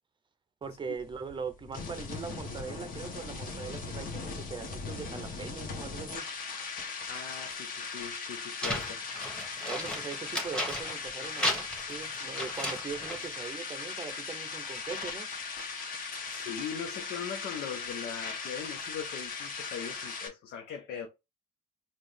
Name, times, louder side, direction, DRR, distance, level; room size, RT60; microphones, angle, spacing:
sound 1, 0.6-20.3, left 4 dB, 55° left, 1.3 m, -39 dB
voice 1, 0.6-6.3 9.7-15.3 20.9-21.0, right 5 dB, 30° right, 0.6 m, -41 dB
voice 2, 7.1-9.0 16.1-21.1, left 7 dB, 75° left, 0.9 m, -40 dB
sound 2, 8.6-11.1 11.4-13.3, left 1 dB, 5° left, 1.5 m, -34 dB
4.1 x 2.4 x 3.3 m
cardioid pair, 110°, 17 cm